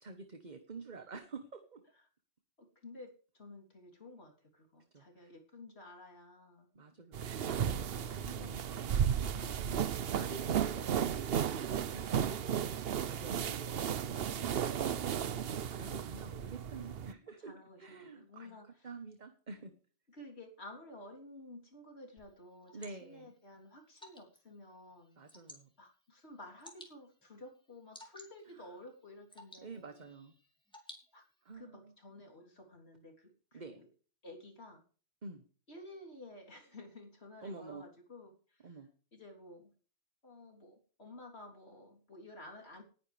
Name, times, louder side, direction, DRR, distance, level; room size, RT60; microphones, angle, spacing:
voice 1, 0.0-2.0 4.9-5.3 6.7-7.2 8.1-8.7 9.4-19.7 22.7-23.3 25.2-25.7 28.4-28.8 29.6-30.3 31.4-31.9 33.5-33.8 35.2-35.4 37.4-37.9 38.6-38.9, right 3 dB, 40° right, 8 dB, 1.3 m, -49 dB
voice 2, 2.8-6.7 7.4-9.7 12.1-12.6 14.2-14.7 17.4-18.7 20.1-25.2 25.8-30.0 31.1-31.2 31.5-33.9 34.2-34.8 35.7-38.7 39.1-39.7 40.2-42.8, left 2 dB, 60° left, 0 dB, 3.8 m, -53 dB
sound 1, 7.1-17.1, right 8 dB, 60° right, 0.9 m, -34 dB
Water / Drip, 22.2-31.5, left 1 dB, 5° left, 3.9 m, -58 dB
19.5 x 9.9 x 3.4 m, 0.40 s
omnidirectional pair, 1.2 m